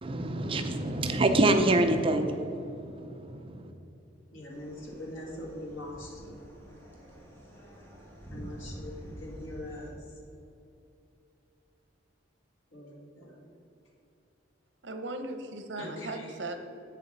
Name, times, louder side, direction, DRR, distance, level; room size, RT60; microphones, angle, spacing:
voice 1, 0.0-3.7, right 2 dB, 30° right, 6 dB, 0.5 m, -26 dB
voice 2, 4.3-6.4 8.3-9.9 12.7-13.4 15.8-16.3, left 1 dB, 85° left, -1 dB, 2.0 m, -42 dB
sound 1, 4.5-9.9, equal, 10° left, 1.5 m, -47 dB
voice 3, 14.8-16.6, right 2 dB, 65° right, 7 dB, 0.9 m, -37 dB
8.2 x 6.8 x 5.4 m, 2.7 s
head